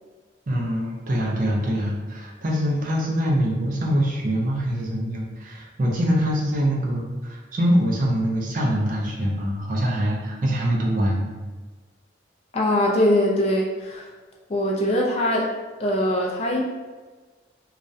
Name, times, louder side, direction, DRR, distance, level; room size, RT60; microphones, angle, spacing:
voice 1, 0.5-11.3, equal, 45° right, -2 dB, 0.4 m, -24 dB
voice 2, 12.5-14.1 14.5-15.5 15.8-16.6, left 1 dB, 30° left, -2 dB, 0.3 m, -22 dB
2.3 x 2.0 x 2.6 m, 1.3 s
head